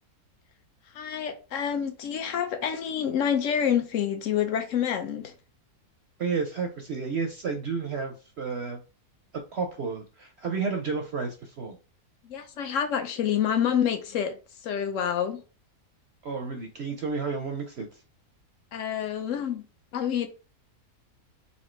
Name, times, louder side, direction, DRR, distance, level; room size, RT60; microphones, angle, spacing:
voice 1, 0.9-5.3 12.2-15.4 18.7-19.6 19.9-20.3, left 8 dB, 60° left, 1.0 m, -28 dB
voice 2, 6.2-8.8 9.5-11.8 16.2-17.9, right 5 dB, 60° right, 0.7 m, -31 dB
4.3 x 2.6 x 4.3 m
omnidirectional pair, 1.6 m